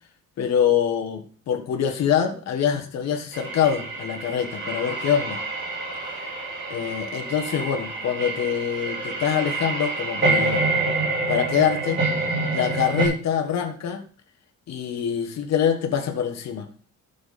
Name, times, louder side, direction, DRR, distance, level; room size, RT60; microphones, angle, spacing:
voice 1, 0.4-5.4 6.1-6.2 6.7-10.7 11.3-12.0 12.5-14.0 14.7-16.7, left 8 dB, 60° left, 4 dB, 1.5 m, -24 dB
sound 1, 3.3-13.1, right 3 dB, 40° right, 4.3 m, -27 dB
11.5 x 7.0 x 4.2 m, 0.40 s
cardioid pair, 160°, 30 cm